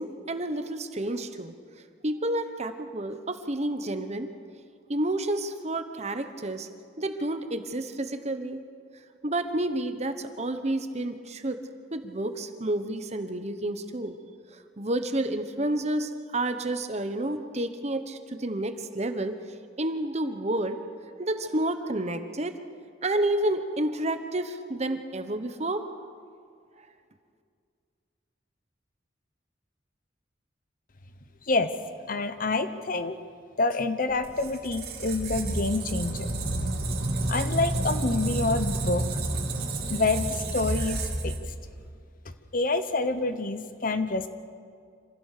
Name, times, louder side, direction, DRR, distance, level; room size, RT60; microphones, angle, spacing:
voice 1, 0.0-1.5 2.0-4.3 4.9-6.7 7.0-8.6 9.2-11.6 11.9-14.1 14.8-19.3 19.8-20.9 21.2-22.6 23.0-25.9, right 1 dB, 35° right, 8 dB, 1.2 m, -30 dB
voice 2, 32.1-33.2 33.6-36.3 37.3-39.2 39.9-41.4 42.2-44.3, left 3 dB, 50° left, 10 dB, 1.0 m, -27 dB
Squeak, 34.1-41.8, right 2 dB, 55° right, 2.9 m, -30 dB
26.5 x 16.0 x 6.8 m, 2.2 s
head